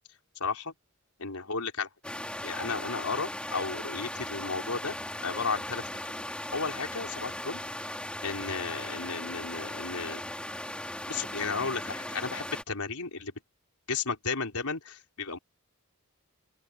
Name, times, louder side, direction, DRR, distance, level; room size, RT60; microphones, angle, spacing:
voice 1, 0.4-0.7 1.2-1.9 2.4-5.0 5.2-5.8 6.5-7.6 8.2-10.2 11.1-13.3 13.9-15.4, left 4 dB, 85° left, 4.6 m, -33 dB
sound 1, 2.0-12.6, left 1 dB, 5° left, 3.5 m, -38 dB
open air
head